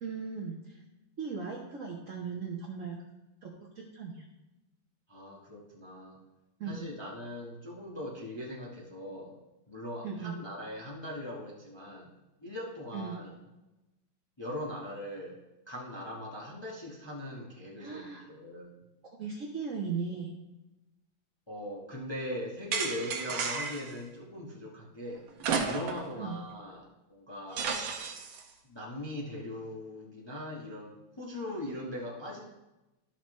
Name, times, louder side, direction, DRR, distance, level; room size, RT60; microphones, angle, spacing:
voice 1, 0.0-0.8 1.2-3.0 3.4-4.2 6.6-6.9 10.0-10.4 12.9-13.3 17.8-18.3 19.0-20.3 26.2-26.4, right 5 dB, 50° right, -2 dB, 1.0 m, -38 dB
voice 2, 5.1-6.2 6.7-9.3 9.7-12.1 12.4-13.4 14.4-15.4 15.7-18.8 21.5-25.2 25.6-27.7 28.6-32.4, left 1 dB, 20° left, -4 dB, 0.9 m, -40 dB
sound 1, 22.7-23.9 25.4-26.1 26.5-26.6 27.6-28.4, right 5 dB, 75° right, 1.6 m, -32 dB
12.0 x 5.8 x 3.1 m, 1.0 s
omnidirectional pair, 2.2 m